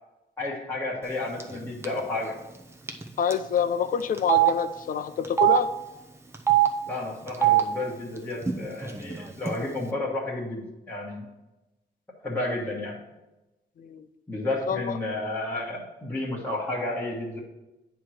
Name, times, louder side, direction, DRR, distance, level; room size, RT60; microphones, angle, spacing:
voice 1, 0.4-2.3 6.9-11.3 12.2-13.0 14.3-17.4, left 2 dB, 10° left, -6 dB, 1.3 m, -31 dB
Telephone, 1.4-1.6 1.8-2.0 2.9-3.0 3.3-3.4 4.2-4.5 5.2-5.6 6.3-6.7 7.3-7.6 8.4-8.5 8.8-9.5, right 13 dB, 15° right, 0.6 m, -21 dB
voice 2, 3.2-5.7 13.8-14.0 14.7-14.9, left 7 dB, 50° left, 11 dB, 0.5 m, -27 dB
9.0 x 3.0 x 6.3 m, 1.0 s
wide cardioid pair, 150°, 18 cm